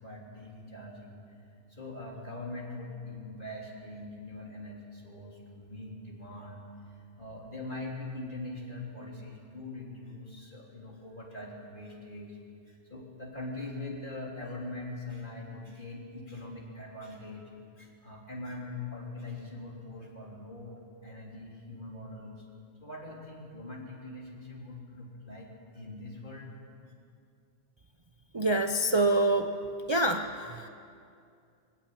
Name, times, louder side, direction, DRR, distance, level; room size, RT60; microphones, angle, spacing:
voice 1, 0.0-1.4 1.7-12.4 12.7-17.5 17.8-22.5 22.8-26.5 26.8-26.9, left 2 dB, 45° left, -2 dB, 3.8 m, -42 dB
voice 2, 28.3-29.6 29.9-30.7, right 1 dB, 30° right, 5 dB, 0.7 m, -26 dB
22.0 x 17.0 x 8.6 m, 2.4 s
omnidirectional pair, 1.1 m